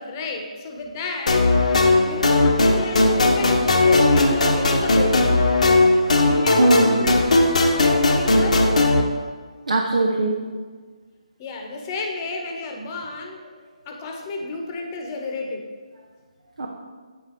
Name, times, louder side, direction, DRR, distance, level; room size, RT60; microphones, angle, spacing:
voice 1, 0.0-1.5 2.1-5.5 6.3-7.2 7.5-8.7 11.4-15.7, left 3 dB, 25° left, 2 dB, 1.0 m, -32 dB
sound 1, 1.3-9.0, left 2 dB, 65° left, 0.9 m, -18 dB
voice 2, 3.7-4.0 6.6-7.0 9.7-10.3 16.6-16.7, right 2 dB, 75° right, 0 dB, 0.9 m, -20 dB
8.0 x 4.8 x 4.4 m, 1.5 s
figure-of-eight pair, 150°, 4 cm